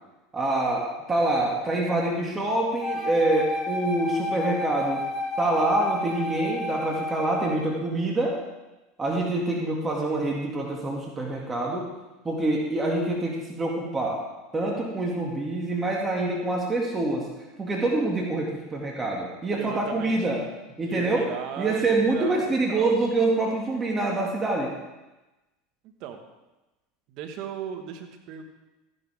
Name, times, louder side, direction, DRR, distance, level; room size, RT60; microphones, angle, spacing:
voice 1, 0.3-5.0 5.4-8.4 9.0-11.9 12.2-14.2 14.5-17.3 17.6-20.4 20.8-21.3 21.6-24.7, right 2 dB, 20° right, -1 dB, 2.5 m, -26 dB
Wind instrument woodwind instrument, 2.8-7.7, left 1 dB, 25° left, 3.3 m, -30 dB
voice 2, 19.5-20.5 20.8-22.9 25.8-26.2 27.1-28.4, right 8 dB, 60° right, 5 dB, 1.7 m, -37 dB
14.5 x 11.0 x 3.7 m, 1.1 s
hypercardioid pair, 95°, 0 cm